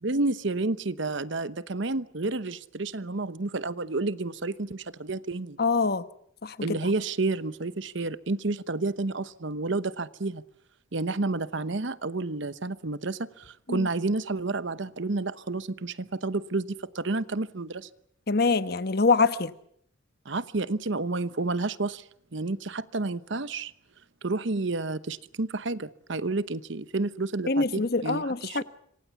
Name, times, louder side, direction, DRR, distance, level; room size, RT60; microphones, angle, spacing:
voice 1, 0.0-5.6 6.6-10.4 10.9-17.9 20.2-23.7 24.2-28.6, right 3 dB, 60° right, 0.9 m, -30 dB
voice 2, 5.6-6.0 6.4-6.8 13.7-13.9 18.3-19.5 27.5-28.6, left 4 dB, 50° left, 1.1 m, -24 dB
26.5 x 25.0 x 7.1 m
head